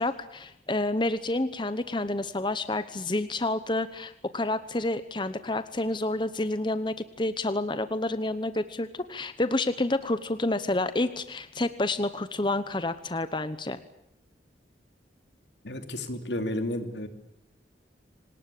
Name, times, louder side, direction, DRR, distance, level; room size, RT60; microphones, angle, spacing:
voice 1, 0.0-13.8, left 2 dB, 25° left, 12 dB, 1.0 m, -29 dB
voice 2, 15.6-17.1, left 1 dB, 80° left, 8 dB, 3.1 m, -32 dB
26.0 x 19.5 x 8.5 m, 0.85 s
head